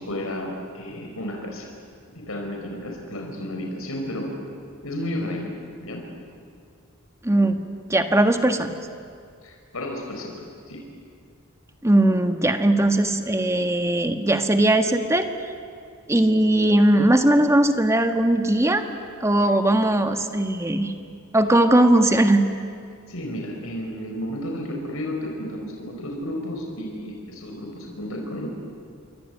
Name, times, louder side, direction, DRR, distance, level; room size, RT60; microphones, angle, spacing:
voice 1, 0.0-1.7 2.1-4.3 4.8-5.5 5.8-6.1 9.4-10.8 23.1-28.5, left 1 dB, 80° left, 1 dB, 4.9 m, -32 dB
voice 2, 7.2-7.6 7.9-8.7 11.8-15.3 16.1-18.8 19.2-20.9 21.3-22.4, right 1 dB, 15° right, 6 dB, 1.6 m, -19 dB
28.0 x 23.0 x 9.3 m, 2.2 s
head